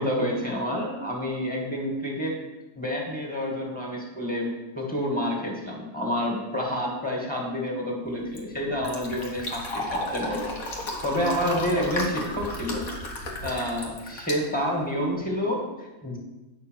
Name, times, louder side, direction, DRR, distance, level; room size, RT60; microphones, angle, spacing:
voice 1, 0.0-2.4 2.8-4.5 4.8-12.9 13.1-16.2, equal, 5° left, -2 dB, 2.2 m, -29 dB
Fill (with liquid), 8.1-15.2, left 1 dB, 80° left, 2.0 m, -34 dB
9.5 x 5.5 x 6.5 m, 1.1 s
omnidirectional pair, 1.5 m